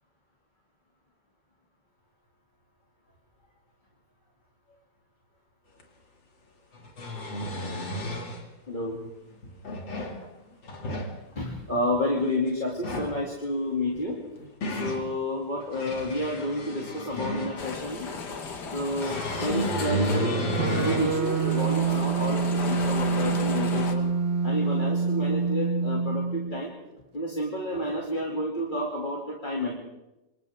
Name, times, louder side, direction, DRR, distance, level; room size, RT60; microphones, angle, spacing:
sound 1, 5.8-5.9 6.7-8.4 9.4-10.2 10.6-11.1 12.7-13.2 14.1-15.0 15.6-17.8 19.0-21.1 21.6-21.7 23.3-23.4, equal, 85° left, 3.4 m, -31 dB
voice 1, 8.7-9.0 11.3-14.2 14.7-18.1 18.7-24.1 24.4-26.7 27.1-29.7, left 1 dB, 25° left, -2 dB, 2.8 m, -30 dB
sound 2, 17.6-23.9, left 4 dB, 65° left, 2.3 m, -35 dB
sound 3, 20.6-26.6, right 5 dB, 45° right, 1.0 m, -26 dB
28.0 x 26.0 x 3.7 m, 0.95 s
omnidirectional pair, 2.0 m